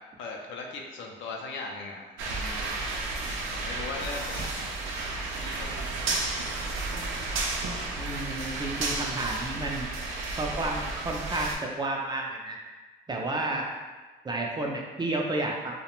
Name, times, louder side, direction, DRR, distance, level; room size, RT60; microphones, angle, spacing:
voice 1, 0.2-2.7 3.5-4.7 5.4-6.0, left 3 dB, 75° left, 0 dB, 0.5 m, -39 dB
sound 1, 2.2-11.6, right 3 dB, 85° right, 0.4 m, -32 dB
voice 2, 8.0-9.9 10.4-12.6 13.1-13.7 14.2-15.8, right 2 dB, 20° right, 0 dB, 0.4 m, -31 dB
2.3 x 2.1 x 2.9 m, 1.3 s
cardioid pair, 90°, 20 cm